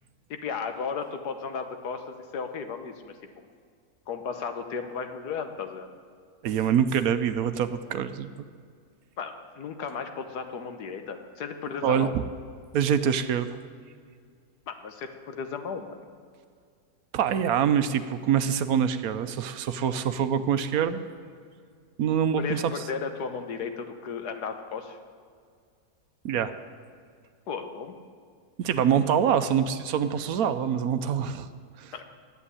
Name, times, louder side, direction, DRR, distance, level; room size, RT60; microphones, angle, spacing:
voice 1, 0.3-3.2 4.1-5.9 9.2-12.1 14.7-16.0 22.4-25.0 27.5-28.0 31.9-32.1, left 6 dB, 85° left, 7 dB, 1.6 m, -35 dB
voice 2, 6.4-8.5 11.8-12.2 12.7-13.6 17.1-21.0 22.0-22.7 26.2-26.5 28.6-31.5 31.8-31.9, right 8 dB, 70° right, 11 dB, 1.1 m, -25 dB
10.5 x 7.9 x 9.7 m, 2.1 s
omnidirectional pair, 1.7 m